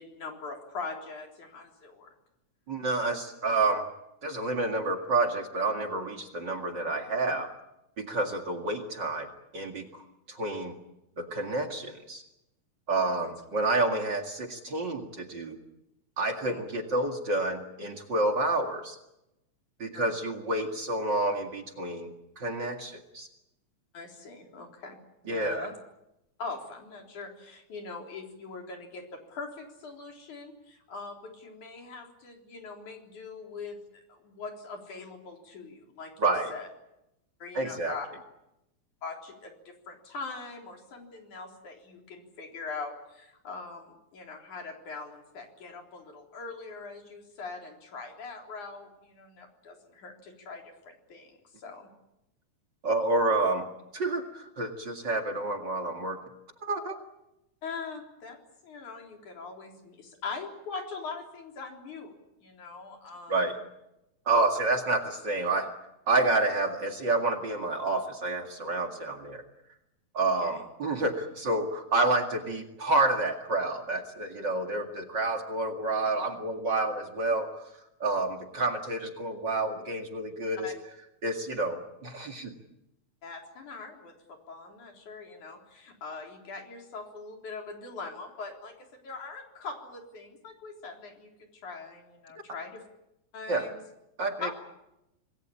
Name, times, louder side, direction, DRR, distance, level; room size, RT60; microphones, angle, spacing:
voice 1, 0.0-2.1 13.0-13.3 16.4-16.7 19.9-20.2 23.9-25.0 25.2-25.7 26.4-36.7 37.4-38.1 39.0-51.9 57.6-58.4 58.6-63.4 70.4-70.6 80.6-80.7 83.2-92.8 93.3-93.8 94.4-94.5, left 4 dB, 75° left, 2 dB, 5.2 m, -42 dB
voice 2, 2.7-3.9 4.2-7.5 8.0-9.3 9.5-10.0 10.3-10.8 11.2-12.2 12.9-15.6 16.2-19.0 19.8-23.3 25.3-25.7 36.2-36.5 37.5-37.9 52.8-53.7 53.9-56.2 56.6-57.0 63.3-63.6 64.3-65.7 66.1-69.4 70.1-77.7 78.0-80.7 81.2-82.5 93.5-93.7 94.2-94.5, right 2 dB, 40° right, 3 dB, 2.4 m, -29 dB
27.0 x 20.5 x 8.7 m, 0.88 s
omnidirectional pair, 3.5 m